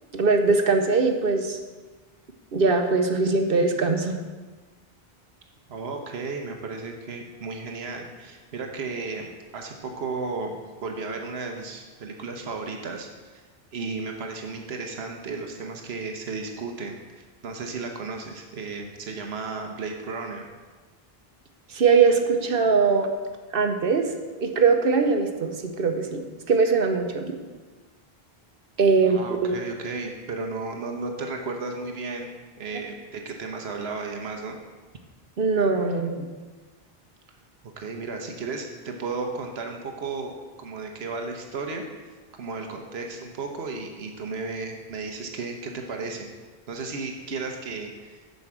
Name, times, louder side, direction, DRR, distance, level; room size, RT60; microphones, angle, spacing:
voice 1, 0.1-1.6 2.5-4.2 21.7-23.1 23.5-24.1 24.4-27.4 28.8-29.6 35.4-36.3, right 4 dB, 65° right, 5 dB, 1.0 m, -21 dB
voice 2, 5.7-13.4 13.7-20.5 29.0-32.3 32.6-34.6 37.8-41.8 42.3-46.3 46.7-48.2, right 4 dB, 90° right, 3 dB, 1.2 m, -34 dB
7.9 x 5.4 x 7.3 m, 1.3 s
omnidirectional pair, 1.0 m